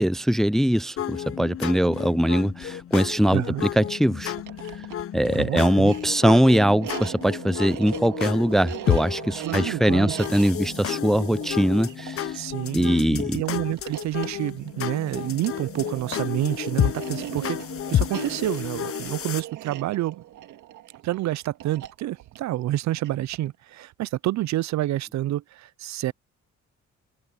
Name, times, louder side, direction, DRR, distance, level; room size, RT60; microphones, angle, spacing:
voice 1, 0.0-3.4 3.8-4.3 5.1-12.4 12.7-13.4, equal, ahead, 0.4 m, -21 dB
sound 1, 1.0-19.4, left 11 dB, 50° left, 0.7 m, -31 dB
voice 2, 3.3-3.6 5.3-5.9 9.4-10.1 12.3-17.6 17.9-20.2 21.0-26.1, right 15 dB, 65° right, 0.5 m, -28 dB
sound 2, 4.3-23.6, right 13 dB, 85° right, 2.0 m, -40 dB
open air
cardioid pair, 90°, 30 cm